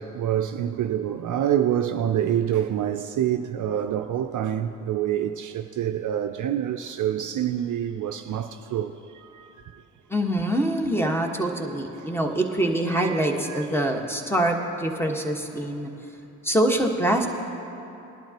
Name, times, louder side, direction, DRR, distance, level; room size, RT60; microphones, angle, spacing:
voice 1, 0.0-9.8 12.0-12.2 12.9-13.7, right 10 dB, 50° right, 0.5 m, -27 dB
voice 2, 10.1-15.9 16.4-17.3, right 1 dB, 5° left, 1.4 m, -24 dB
19.0 x 11.5 x 3.0 m
hypercardioid pair, 55°, 40 cm